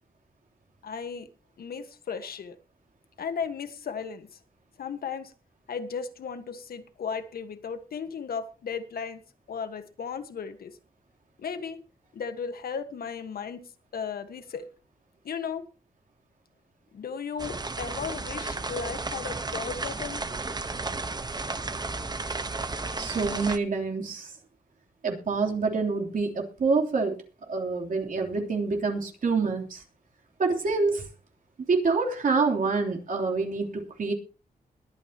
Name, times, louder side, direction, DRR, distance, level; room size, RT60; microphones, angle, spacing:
voice 1, 0.8-1.3 1.6-2.6 3.2-4.3 4.8-5.3 5.7-9.2 9.5-10.8 11.4-11.8 12.1-13.6 13.9-14.7 15.2-15.7 16.9-20.2, left 6 dB, 80° left, 9 dB, 1.5 m, -35 dB
sound 1, 17.4-23.6, right 3 dB, 25° right, 1.1 m, -33 dB
voice 2, 23.0-24.3 25.0-27.2 27.5-29.8 30.4-31.1 31.7-34.1, right 4 dB, 60° right, 2 dB, 3.3 m, -27 dB
21.5 x 9.2 x 2.9 m, 0.34 s
cardioid pair, 85°, 15 cm